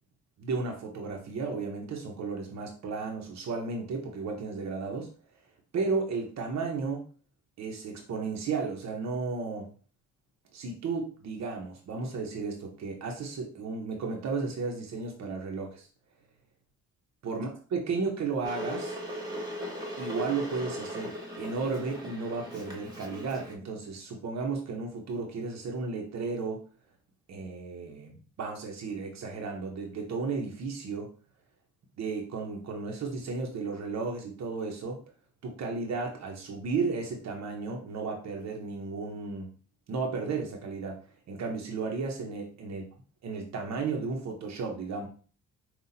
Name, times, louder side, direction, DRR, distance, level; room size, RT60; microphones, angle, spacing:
voice 1, 0.4-5.1 5.7-7.0 7.6-9.7 10.5-15.9 17.2-19.0 20.0-26.6 27.3-31.1 32.0-35.0 35.4-39.5 39.9-41.0 41.3-42.8 43.2-45.1, right 4 dB, 60° right, 1 dB, 0.9 m, -34 dB
Water / Boiling, 18.4-23.5, equal, 10° right, 1.5 m, -38 dB
5.7 x 2.4 x 2.7 m, 0.39 s
cardioid pair, 90°, 30 cm